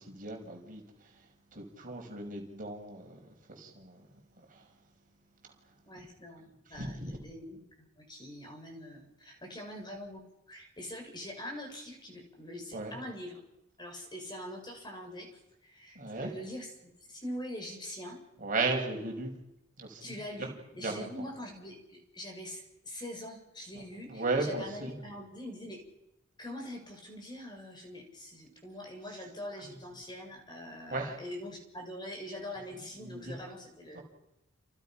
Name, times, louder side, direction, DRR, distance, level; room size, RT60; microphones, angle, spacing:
voice 1, 0.1-0.8 1.5-3.2 3.5-4.1 6.7-7.2 12.7-13.0 16.0-16.3 18.4-19.3 19.8-20.5 20.8-21.1 24.1-25.0 29.6-29.7 30.9-31.1 33.0-33.3 33.9-34.0, right 3 dB, 45° right, 1 dB, 5.9 m, -35 dB
voice 2, 5.9-10.2 10.5-13.4 13.8-15.3 15.6-18.2 20.0-25.8 26.4-34.0, left 1 dB, 20° left, 2 dB, 6.4 m, -43 dB
29.5 x 28.5 x 5.9 m, 0.89 s
head